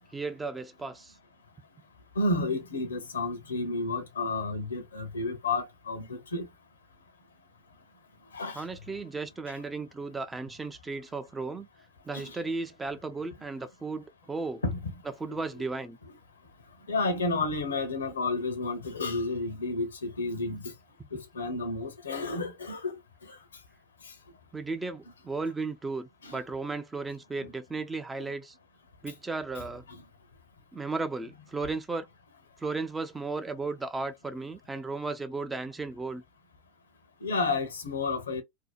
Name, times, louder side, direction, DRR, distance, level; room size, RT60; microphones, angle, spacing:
voice 1, 0.1-1.1 8.5-11.7 12.1-14.7 15.0-16.0 24.5-28.5 29.0-29.8 30.7-32.1 32.6-36.2, right 3 dB, 15° right, 0.5 m, -35 dB
voice 2, 2.2-6.5 8.3-8.6 12.1-12.4 14.6-14.8 16.9-20.6 21.1-23.0 26.2-26.4 37.2-38.4, left 3 dB, 80° left, 0.7 m, -31 dB
2.7 x 2.1 x 2.2 m
figure-of-eight pair, 85°, 0 cm